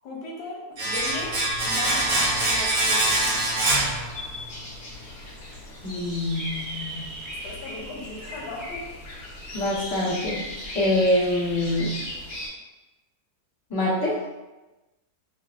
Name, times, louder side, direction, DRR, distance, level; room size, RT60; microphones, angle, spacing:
voice 1, 0.0-3.2 7.4-8.9, left 3 dB, 90° left, -2 dB, 1.3 m, -38 dB
Domestic sounds home sounds, 0.8-4.6 4.8-5.0, right 2 dB, 50° right, 0.9 m, -24 dB
sound 1, 0.9-12.5, left 2 dB, 50° left, 1.2 m, -38 dB
voice 2, 5.8-7.1 9.5-11.9 13.7-14.2, left 1 dB, 20° left, -8 dB, 0.8 m, -25 dB
sound 2, 5.9-10.7, right 2 dB, 80° right, 1.4 m, -41 dB
5.8 x 2.0 x 2.4 m, 1.1 s
omnidirectional pair, 1.7 m